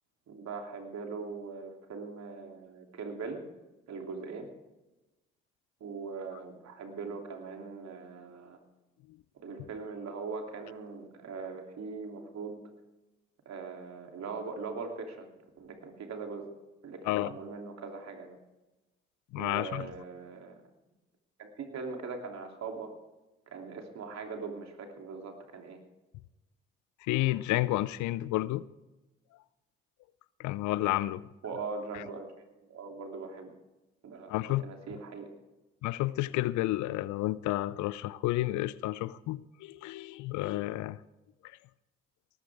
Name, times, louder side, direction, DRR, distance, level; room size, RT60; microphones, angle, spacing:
voice 1, 0.3-3.4 3.9-4.5 5.8-8.6 9.3-12.6 13.4-15.3 15.6-16.4 16.8-18.4 19.3-20.6 21.4-22.9 23.5-25.8 31.4-33.5 34.0-34.3 34.6-35.3, right 4 dB, 60° right, 3.1 m, -41 dB
voice 2, 19.3-19.9 27.0-28.7 30.4-31.3 31.9-32.0 34.3-34.7 35.8-41.0 41.4-41.6, left 17 dB, 70° left, 0.6 m, -31 dB
19.0 x 14.5 x 3.6 m
hypercardioid pair, 45°, 30 cm